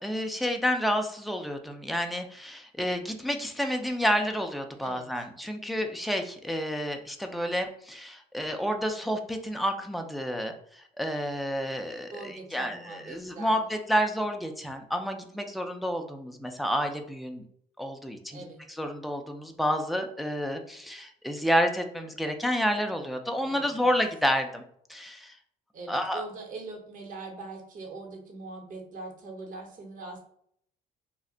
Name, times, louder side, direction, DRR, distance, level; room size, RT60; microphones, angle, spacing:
voice 1, 0.0-17.5 17.8-24.6 24.9-25.4 25.9-26.2, equal, ahead, 4 dB, 0.4 m, -30 dB
voice 2, 12.1-13.6 18.3-18.6 23.4-23.9 25.7-30.2, right 3 dB, 50° right, 1 dB, 0.9 m, -42 dB
2.4 x 2.1 x 3.7 m, 0.67 s
cardioid pair, 110°, 17 cm